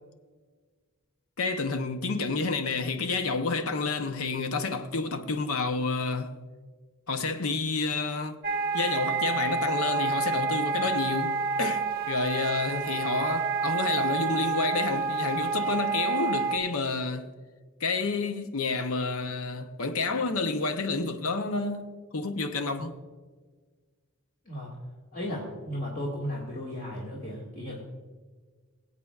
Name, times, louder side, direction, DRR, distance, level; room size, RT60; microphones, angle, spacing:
voice 1, 1.4-6.4 7.1-8.4 8.7-17.3 17.8-23.0, left 3 dB, 70° left, 0.7 m, -29 dB
sound 1, 8.4-16.6, right 4 dB, 45° right, 0.7 m, -29 dB
voice 2, 25.1-27.8, equal, 40° left, 1.9 m, -35 dB
23.0 x 8.1 x 2.4 m
head